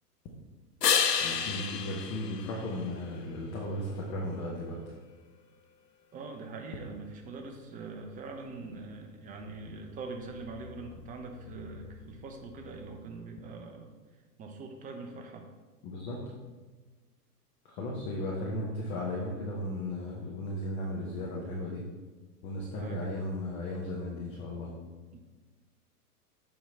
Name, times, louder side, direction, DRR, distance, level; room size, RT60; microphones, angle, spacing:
sound 1, 0.8-3.4 9.1-13.1, left 7 dB, 85° left, 0.7 m, -34 dB
voice 1, 1.2-4.8 15.8-16.3 17.6-21.8 22.4-24.7, left 1 dB, 15° left, -2 dB, 0.4 m, -35 dB
voice 2, 6.1-13.9 14.4-15.5 22.7-23.1 25.1-25.2, right 4 dB, 15° right, 3 dB, 0.7 m, -43 dB
7.2 x 4.6 x 4.1 m, 1.3 s
figure-of-eight pair, 105°, 47 cm